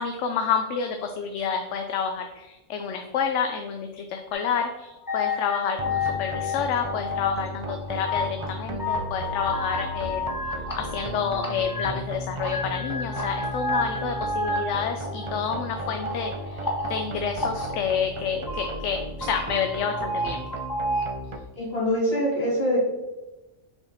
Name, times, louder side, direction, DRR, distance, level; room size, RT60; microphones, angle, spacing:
voice 1, 0.0-10.3 10.7-20.4, left 6 dB, 80° left, 5 dB, 0.9 m, -29 dB
sound 1, 4.3-4.4 5.1-7.3 7.6-8.5 8.8-12.1 12.4-17.7 18.3-18.7 19.0-21.1, left 2 dB, 20° left, 0.9 m, -31 dB
sound 2, 5.8-21.4, right 1 dB, 45° right, 0.4 m, -36 dB
voice 2, 21.6-22.9, equal, 55° left, -7 dB, 2.7 m, -24 dB
5.7 x 4.4 x 4.0 m, 1.1 s
omnidirectional pair, 1.2 m